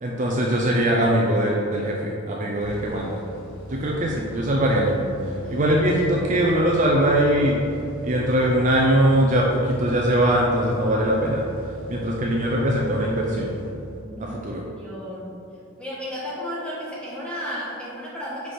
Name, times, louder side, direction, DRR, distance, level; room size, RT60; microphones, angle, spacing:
voice 1, 0.0-3.2 3.7-7.6 8.0-11.4 11.9-13.5 14.2-14.6, right 1 dB, 35° right, -2 dB, 0.5 m, -21 dB
sound 1, 2.6-14.3, left 1 dB, 80° left, 1.4 m, -38 dB
voice 2, 14.0-15.4 15.8-18.5, equal, 5° left, -7 dB, 1.4 m, -34 dB
4.9 x 4.7 x 4.3 m, 2.6 s
head